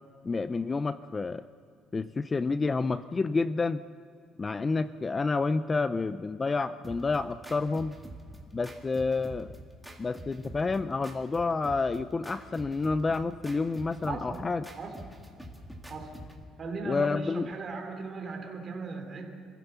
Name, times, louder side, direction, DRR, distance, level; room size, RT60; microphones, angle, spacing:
voice 1, 0.2-1.4 1.9-3.8 4.4-8.0 8.5-9.5 10.0-14.7 16.8-17.5, left 3 dB, 20° left, 14 dB, 0.4 m, -29 dB
sound 1, 6.8-16.4, right 1 dB, ahead, 2.2 m, -46 dB
voice 2, 14.1-14.5 14.8-15.0 15.9-16.2 16.6-19.4, right 4 dB, 30° right, 2 dB, 3.4 m, -38 dB
27.5 x 15.5 x 7.0 m, 2.5 s
cardioid pair, 145°, 0 cm